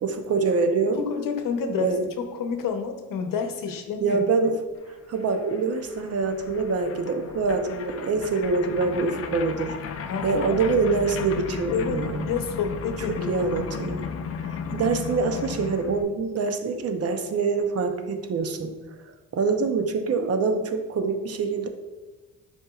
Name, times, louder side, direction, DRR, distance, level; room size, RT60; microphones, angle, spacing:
voice 1, 0.0-1.0 1.6-2.1 4.0-4.6 5.1-9.7 10.2-12.3 13.1-14.0 14.4-18.7 19.3-21.7, right 4 dB, 45° right, 6 dB, 0.7 m, -25 dB
voice 2, 0.9-4.2 10.1-10.7 11.7-13.4, left 5 dB, 70° left, 6 dB, 0.8 m, -29 dB
sound 1, 4.9-5.0 5.1-16.0, left 6 dB, 45° left, 0.4 m, -35 dB
9.7 x 4.5 x 2.4 m, 1.2 s
cardioid pair, 145°, 34 cm